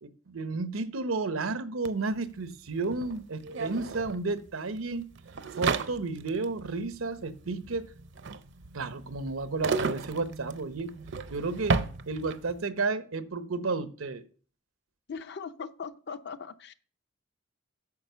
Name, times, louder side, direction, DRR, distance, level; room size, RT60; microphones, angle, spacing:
voice 1, 0.0-5.1 5.6-7.9 8.7-10.9 11.3-11.8 12.1-14.2, right 3 dB, 90° right, 0.9 m, -32 dB
sound 1, 1.9-12.6, right 4 dB, 60° right, 0.6 m, -34 dB
voice 2, 15.1-16.7, left 5 dB, 55° left, 0.6 m, -39 dB
9.6 x 5.0 x 6.8 m
head